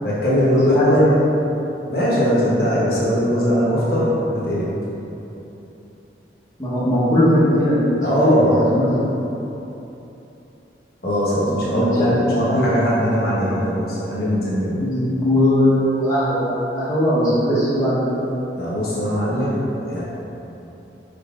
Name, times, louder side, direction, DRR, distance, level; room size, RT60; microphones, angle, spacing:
voice 1, 0.0-1.1 1.9-4.7 8.0-8.6 11.0-14.8 18.5-20.0, equal, 55° left, -8 dB, 1.1 m, -20 dB
voice 2, 0.7-1.2 6.6-8.9 9.2-9.4 11.7-12.7 14.8-18.4, equal, 20° left, -11 dB, 0.9 m, -19 dB
5.6 x 3.8 x 2.4 m, 3.0 s
head